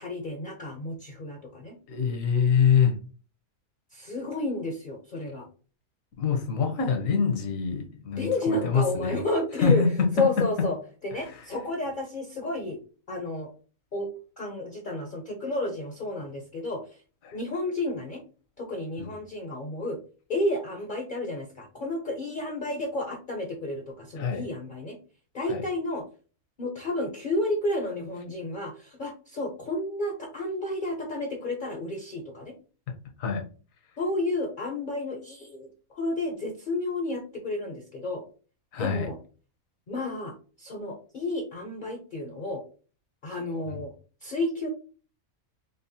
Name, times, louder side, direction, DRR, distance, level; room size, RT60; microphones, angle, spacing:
voice 1, 0.0-1.8 3.9-5.5 8.2-9.8 10.2-10.8 11.0-12.8 13.1-13.5 13.9-14.1 14.4-17.0 17.3-18.2 18.6-20.0 20.3-25.0 25.3-26.0 26.6-32.5 34.0-38.2 38.8-39.2 39.9-42.6 43.2-43.9 44.2-44.7, left 2 dB, 50° left, 0.6 m, -31 dB
voice 2, 1.9-3.0 6.2-9.2 9.6-10.7 11.1-11.4 17.2-17.4 19.0-19.1 24.2-24.5 25.5-25.6 32.9-33.5 38.7-39.1 43.7-43.8, left 6 dB, 70° left, 1.2 m, -25 dB
5.1 x 2.0 x 2.7 m
omnidirectional pair, 1.5 m